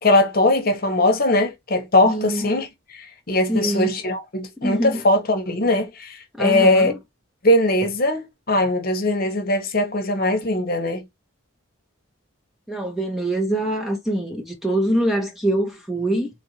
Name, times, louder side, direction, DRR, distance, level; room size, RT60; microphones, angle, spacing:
voice 1, 0.0-6.9 7.4-11.0, left 1 dB, 45° left, 0.9 m, -20 dB
voice 2, 2.1-2.5 3.5-3.9 4.6-5.0 6.3-7.0 12.7-16.3, right 1 dB, ahead, 0.5 m, -24 dB
3.5 x 2.5 x 2.8 m
head